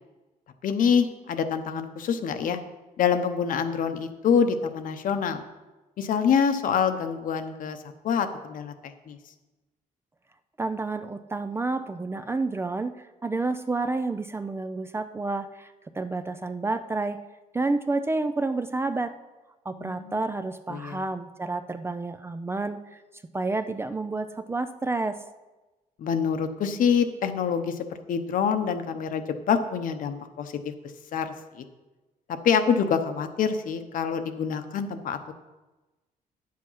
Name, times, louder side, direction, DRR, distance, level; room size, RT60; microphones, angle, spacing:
voice 1, 0.6-2.6 3.0-5.4 6.0-7.8 8.0-9.2 19.8-20.1 20.7-21.0 26.0-30.7 31.1-31.6 32.4-35.3, left 7 dB, 65° left, 8 dB, 1.0 m, -26 dB
voice 2, 10.6-17.2 17.5-19.1 19.7-23.0 23.3-25.2, right 3 dB, 15° right, 10 dB, 0.4 m, -29 dB
10.5 x 7.6 x 5.6 m, 1.1 s
cardioid pair, 150°, 15 cm